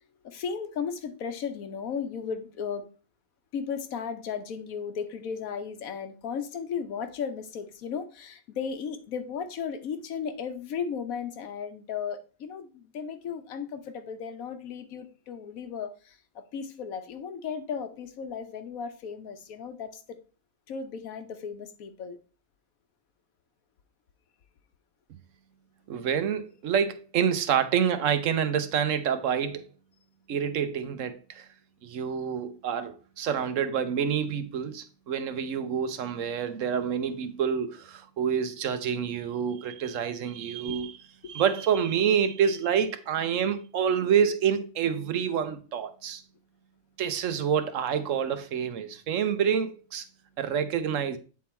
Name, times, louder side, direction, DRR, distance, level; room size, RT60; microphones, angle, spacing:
voice 1, 0.2-2.9 3.5-16.1 16.5-19.9 20.7-22.2 40.7-40.8, left 6 dB, 80° left, 1.3 m, -35 dB
voice 2, 25.9-29.7 30.3-31.5 31.8-41.0 41.2-46.2 47.0-50.0 50.4-51.2, right 8 dB, 70° right, 1.0 m, -27 dB
8.4 x 3.8 x 4.2 m
omnidirectional pair, 1.5 m